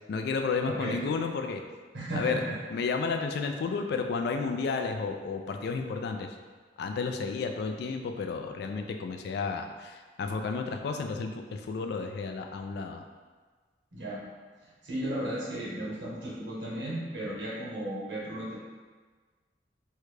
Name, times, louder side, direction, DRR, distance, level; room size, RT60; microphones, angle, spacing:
voice 1, 0.1-1.6 2.2-2.4 2.7-6.4 6.8-13.0, left 4 dB, 60° left, 5 dB, 0.3 m, -32 dB
voice 2, 0.6-1.0 1.9-2.5 13.9-14.2 14.6-18.6, right 1 dB, 85° right, -7 dB, 1.1 m, -35 dB
3.6 x 2.2 x 3.2 m, 1.4 s
head